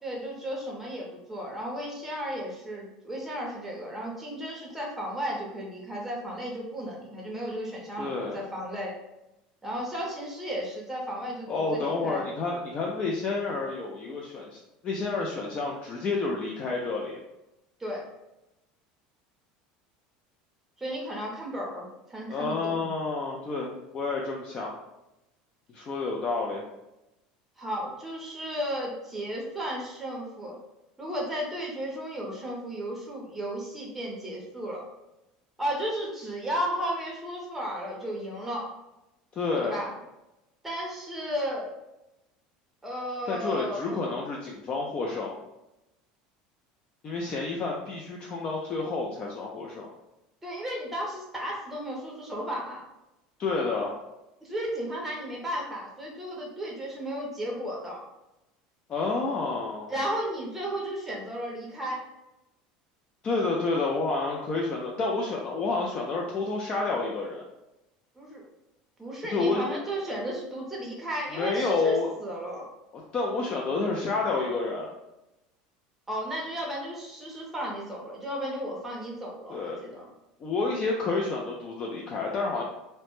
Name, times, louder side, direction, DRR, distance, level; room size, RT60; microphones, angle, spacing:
voice 1, 0.0-8.9 9.6-12.3 17.8-18.0 20.8-22.9 27.6-30.6 31.0-34.8 35.6-38.7 39.6-39.9 40.6-41.7 42.8-44.0 50.4-52.8 54.4-58.0 59.9-62.0 68.2-68.4 69.0-72.7 76.1-80.0, equal, 5° right, -2 dB, 0.6 m, -34 dB
voice 2, 8.0-8.5 11.5-17.2 22.3-24.7 25.7-26.6 39.3-39.8 43.3-45.4 47.0-49.9 53.4-53.9 58.9-59.9 63.2-67.4 69.3-69.8 71.3-72.2 73.1-74.9 79.5-79.8 80.4-82.6, left 3 dB, 30° left, -2 dB, 0.3 m, -29 dB
2.1 x 2.0 x 2.9 m, 0.94 s
supercardioid pair, 135°, 3 cm